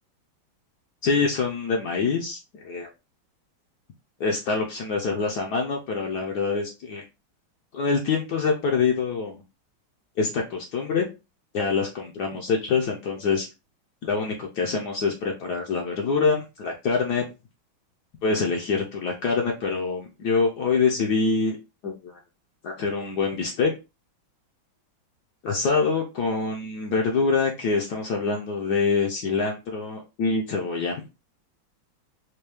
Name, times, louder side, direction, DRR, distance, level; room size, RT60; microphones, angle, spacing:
voice 1, 1.0-2.9 4.2-7.0 7.7-9.4 10.2-11.1 11.5-13.5 14.0-17.3 18.2-21.6 21.8-22.2 22.6-23.7 25.4-31.0, left 4 dB, 65° left, 1 dB, 1.1 m, -25 dB
4.5 x 2.2 x 3.3 m, 0.27 s
omnidirectional pair, 2.1 m